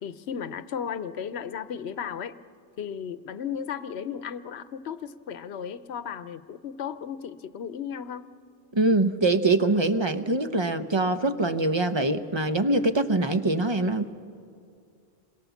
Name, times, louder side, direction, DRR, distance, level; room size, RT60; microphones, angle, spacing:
voice 1, 0.0-2.4 2.8-8.3, left 7 dB, 85° left, 13 dB, 1.0 m, -35 dB
voice 2, 8.7-14.1, right 2 dB, 30° right, 10 dB, 0.9 m, -24 dB
28.0 x 22.5 x 7.1 m, 2.3 s
omnidirectional pair, 1.1 m